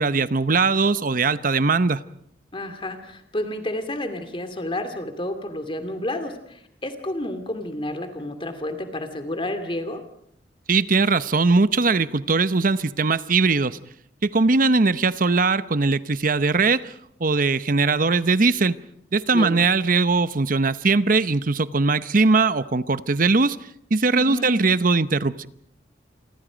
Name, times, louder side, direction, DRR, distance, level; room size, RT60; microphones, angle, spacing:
voice 1, 0.0-2.0 10.7-13.8 14.2-16.9 17.2-18.8 19.1-23.6 23.9-25.5, right 3 dB, 50° right, 14 dB, 0.9 m, -20 dB
voice 2, 2.5-10.0 19.3-19.6 24.1-24.5, left 1 dB, 30° left, 8 dB, 2.6 m, -30 dB
29.0 x 24.0 x 5.2 m, 0.70 s
head